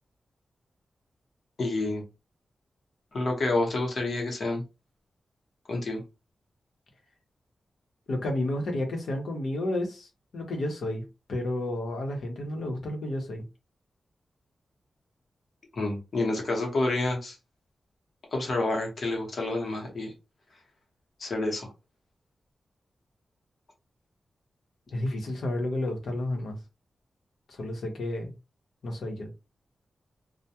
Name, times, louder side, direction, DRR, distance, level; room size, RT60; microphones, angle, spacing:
voice 1, 1.6-2.0 3.1-4.6 5.7-6.0 15.7-17.4 18.3-20.1 21.2-21.7, left 2 dB, 55° left, 0.9 m, -28 dB
voice 2, 8.1-11.0 11.3-13.5 24.9-26.6 27.5-28.3 28.8-29.3, left 1 dB, 90° left, 0.8 m, -31 dB
2.2 x 2.1 x 2.8 m
wide cardioid pair, 155°, 0 cm